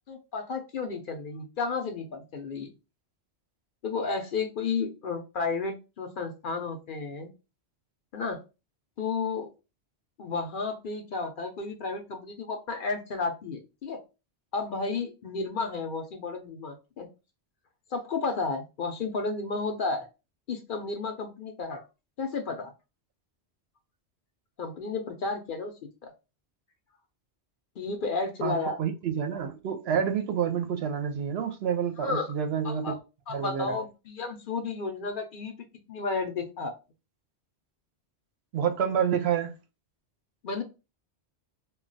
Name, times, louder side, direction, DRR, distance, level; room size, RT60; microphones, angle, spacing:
voice 1, 0.1-2.7 3.8-7.3 8.1-8.4 9.0-9.5 10.2-14.0 14.5-17.1 17.9-20.1 20.5-21.8 22.2-22.7 24.6-25.7 26.0-26.1 27.8-28.8 32.0-32.3 32.6-32.9 33.3-35.5 35.9-36.7 40.4-40.6, left 4 dB, 60° left, 0.7 m, -32 dB
voice 2, 28.4-33.0 33.3-33.8 38.5-39.6, right 8 dB, 70° right, 0.8 m, -28 dB
2.2 x 2.2 x 3.8 m
omnidirectional pair, 1.1 m